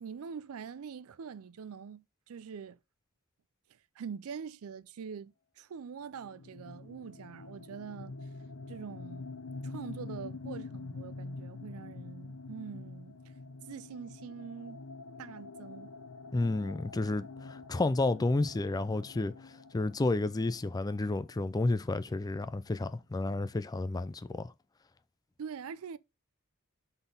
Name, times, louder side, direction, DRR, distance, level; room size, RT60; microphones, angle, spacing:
voice 1, 0.0-2.8 4.0-8.1 8.7-9.3 9.6-13.2 13.7-14.8 15.2-15.9 25.4-26.0, right 6 dB, 70° right, 0.4 m, -44 dB
sound 1, 6.2-21.8, left 3 dB, 75° left, 0.8 m, -46 dB
voice 2, 16.3-24.5, left 2 dB, 15° left, 0.3 m, -31 dB
5.8 x 4.1 x 5.2 m
head